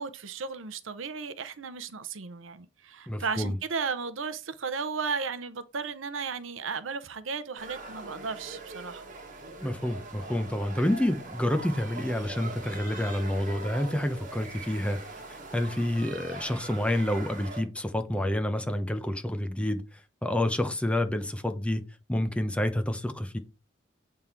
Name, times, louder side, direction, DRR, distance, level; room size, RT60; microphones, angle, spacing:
voice 1, 0.0-9.1, right 5 dB, 90° right, 0.7 m, -35 dB
voice 2, 3.1-3.5 9.6-15.0 15.5-19.8 20.2-21.8 22.1-23.4, left 1 dB, 5° left, 0.8 m, -28 dB
sound 1, 7.6-17.6, right 2 dB, 45° right, 1.5 m, -42 dB
8.0 x 3.7 x 4.4 m
head